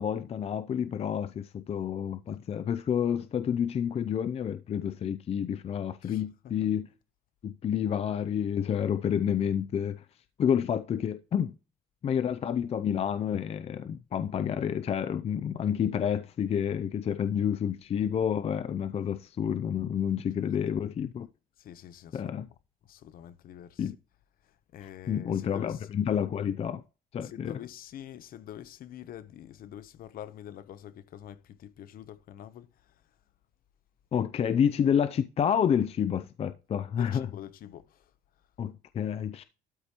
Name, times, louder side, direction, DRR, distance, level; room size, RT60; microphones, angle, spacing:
voice 1, 0.0-6.9 7.4-10.1 10.4-11.5 12.0-21.3 22.1-22.5 23.8-24.0 24.8-26.8 27.1-27.6 34.1-37.3 38.6-39.4, left 8 dB, 35° left, 0.4 m, -29 dB
voice 2, 21.6-22.4 22.9-23.9 24.7-25.8 27.2-32.9 37.0-38.1, left 11 dB, 60° left, 0.8 m, -46 dB
12.5 x 4.9 x 2.9 m
cardioid pair, 110°, 17 cm